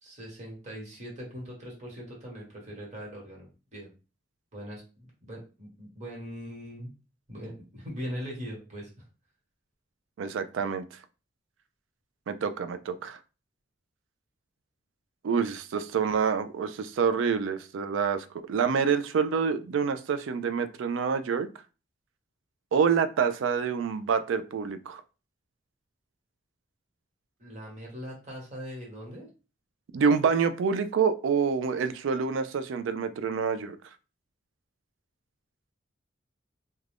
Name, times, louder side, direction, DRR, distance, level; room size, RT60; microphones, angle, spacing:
voice 1, 0.0-3.9 4.5-6.9 7.3-9.0 27.4-29.3, equal, 35° right, 1.2 m, -41 dB
voice 2, 10.2-10.8 12.3-13.2 15.2-21.5 22.7-25.0 29.9-33.8, right 6 dB, 70° right, 0.3 m, -27 dB
2.4 x 2.2 x 3.3 m
head